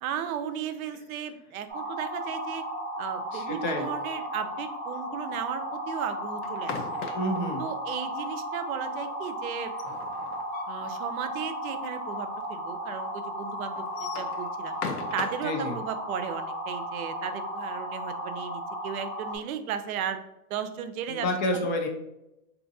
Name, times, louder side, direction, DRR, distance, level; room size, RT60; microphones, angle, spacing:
voice 1, 0.0-2.6 3.0-6.8 7.6-9.7 10.7-14.7 15.1-20.2 20.5-21.3, right 8 dB, 70° right, 9 dB, 0.6 m, -35 dB
sound 1, 1.7-19.4, equal, 15° right, 0.8 m, -35 dB
voice 2, 3.3-3.9 7.1-7.6 15.4-15.8 21.1-21.9, left 1 dB, 35° left, 3 dB, 0.5 m, -29 dB
sound 2, 6.4-7.5 9.6-10.9 11.2-11.3 11.6-11.7 12.5-12.6 13.8-15.5, left 5 dB, 80° left, 0.7 m, -37 dB
3.6 x 2.8 x 2.6 m, 0.89 s
hypercardioid pair, 140°, 44 cm